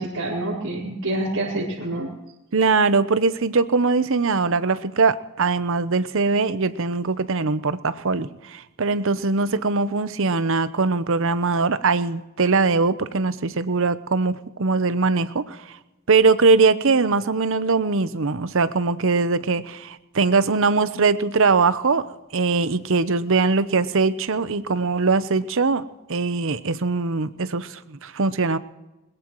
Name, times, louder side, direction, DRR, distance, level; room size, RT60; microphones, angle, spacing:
voice 1, 0.0-2.1, right 1 dB, 85° right, -7 dB, 4.2 m, -27 dB
voice 2, 2.5-15.6 16.1-25.8 26.1-28.6, right 4 dB, 60° right, 13 dB, 0.8 m, -21 dB
21.5 x 20.5 x 3.1 m, 1.0 s
head